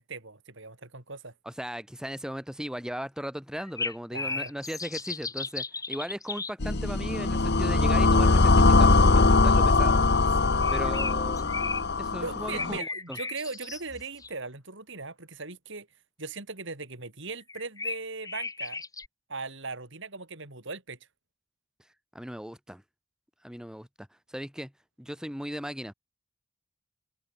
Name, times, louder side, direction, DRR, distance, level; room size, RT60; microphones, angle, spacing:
voice 1, 0.0-1.3 4.1-4.5 10.4-10.9 12.2-15.9 16.2-18.8 19.3-21.0, right 3 dB, 60° right, 4.2 m, -39 dB
voice 2, 1.5-10.0 10.7-13.2 22.1-22.8 23.4-24.7 25.0-25.9, equal, 5° right, 2.6 m, -37 dB
sound 1, 3.6-6.5 10.6-11.8 12.6-14.3 17.5-19.1, left 4 dB, 15° left, 5.7 m, -35 dB
sound 2, 6.6-12.8, left 3 dB, 50° left, 1.2 m, -21 dB
open air
head